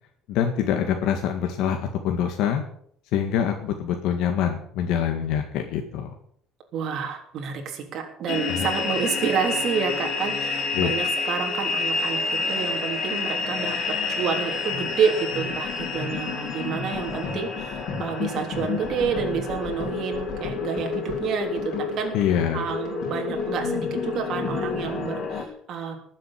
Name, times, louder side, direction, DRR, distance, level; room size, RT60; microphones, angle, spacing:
voice 1, 0.3-1.8 2.0-2.6 3.1-6.1 8.5-8.7 10.7-10.9 22.1-22.6, left 9 dB, 70° left, 4 dB, 1.8 m, -25 dB
voice 2, 6.7-13.8 14.1-21.6 22.0-22.1 22.5-26.0, right 6 dB, 45° right, 2 dB, 3.5 m, -29 dB
sound 1, 8.3-25.4, left 4 dB, 50° left, 3.6 m, -29 dB
19.5 x 7.7 x 7.4 m, 0.66 s
cardioid pair, 160°, 0 cm